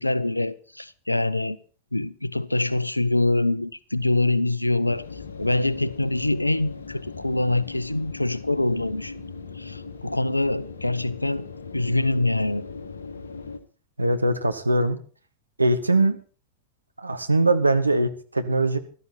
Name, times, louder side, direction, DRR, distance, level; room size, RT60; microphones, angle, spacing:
voice 1, 0.0-1.6 1.9-5.0 5.4-9.1 9.6-11.4 11.7-12.6, left 2 dB, 85° left, 0.6 m, -24 dB
sound 1, 4.9-13.6, left 4 dB, 70° left, 1.4 m, -39 dB
voice 2, 14.0-15.0 15.6-16.2 17.0-18.8, right 2 dB, 80° right, 1.4 m, -21 dB
15.5 x 13.5 x 4.4 m
figure-of-eight pair, 90°, 0 cm